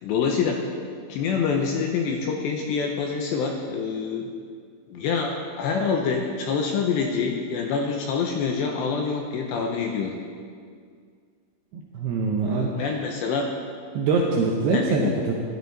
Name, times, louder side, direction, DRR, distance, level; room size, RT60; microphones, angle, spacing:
voice 1, 0.0-0.6 1.1-4.3 4.9-10.2 12.4-13.5 14.7-15.2, left 5 dB, 80° left, 1 dB, 2.6 m, -26 dB
voice 2, 11.7-12.7 13.9-15.3, right 4 dB, 80° right, -1 dB, 2.4 m, -24 dB
14.5 x 11.5 x 4.1 m, 2.1 s
omnidirectional pair, 5.8 m